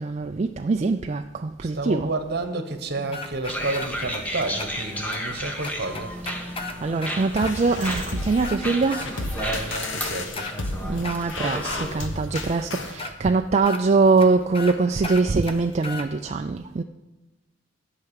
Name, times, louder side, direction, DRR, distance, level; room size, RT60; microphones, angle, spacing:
voice 1, 0.0-2.1 5.6-5.7 6.2-6.5 6.8-9.4 10.8-16.8, right 3 dB, 35° right, 5 dB, 0.4 m, -23 dB
voice 2, 1.6-6.1 9.4-10.5, right 2 dB, 55° right, 7 dB, 1.2 m, -30 dB
sound 1, 3.1-4.2 4.6-4.7 5.1-5.2 5.6-7.5 7.8-8.0 8.3-9.1 9.4-10.5 11.0-11.8 12.3-12.4 13.0-13.1 13.6-13.8 14.2-14.3 14.5-14.8 15.0-16.1, left 3 dB, 30° left, 0.8 m, -35 dB
sound 2, 3.5-12.0, equal, 10° left, 1.1 m, -33 dB
sound 3, 7.4-13.0, left 2 dB, 70° left, 1.2 m, -32 dB
11.5 x 5.8 x 8.3 m, 1.1 s
head